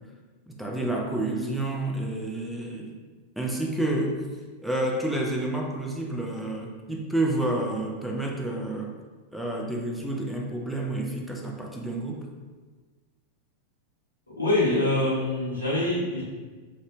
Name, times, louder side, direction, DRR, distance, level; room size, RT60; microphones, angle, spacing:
voice 1, 0.5-3.0 3.4-4.3 4.6-9.0 9.3-12.3, right 1 dB, ahead, 0 dB, 0.3 m, -29 dB
voice 2, 14.4-16.2, left 2 dB, 80° left, -6 dB, 0.7 m, -24 dB
2.5 x 2.0 x 2.8 m, 1.4 s
figure-of-eight pair, 90°, 0 cm